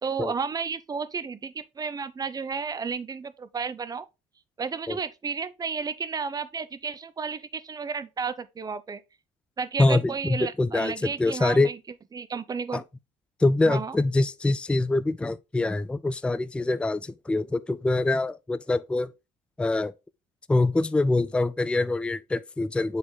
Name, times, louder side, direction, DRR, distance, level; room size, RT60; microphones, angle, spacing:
voice 1, 0.0-4.1 4.6-9.0 9.6-11.8 12.1-12.9 13.6-14.0, right 5 dB, 30° right, 0.7 m, -32 dB
voice 2, 9.8-11.7 12.7-12.8 13.4-19.1 19.6-19.9 20.5-23.0, left 2 dB, 10° left, 0.4 m, -24 dB
7.2 x 3.7 x 3.9 m
supercardioid pair, 90°, 14 cm